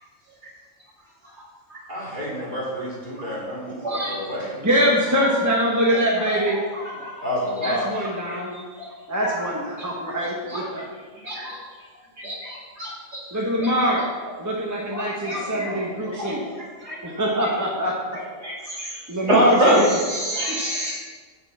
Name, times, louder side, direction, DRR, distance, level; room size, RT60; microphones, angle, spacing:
voice 1, 1.9-4.9 7.2-7.9, equal, 40° right, -7 dB, 3.5 m, -30 dB
voice 2, 3.8-4.2 6.3-6.4 6.7-7.1 8.3-8.4 8.8-8.9 10.5-10.6 11.2-11.6 12.2-13.2 14.9-15.7 16.2-16.3 16.8-17.0 17.4-17.5 18.4-18.9 19.3-20.9, equal, 60° right, -6 dB, 2.9 m, -25 dB
voice 3, 4.6-6.6 7.6-8.5 9.1-10.9 13.3-14.0 14.4-16.5 17.0-18.0 19.1-19.9 20.5-20.6, equal, 15° right, -3 dB, 1.1 m, -23 dB
8.0 x 6.8 x 5.6 m, 1.4 s
omnidirectional pair, 1.3 m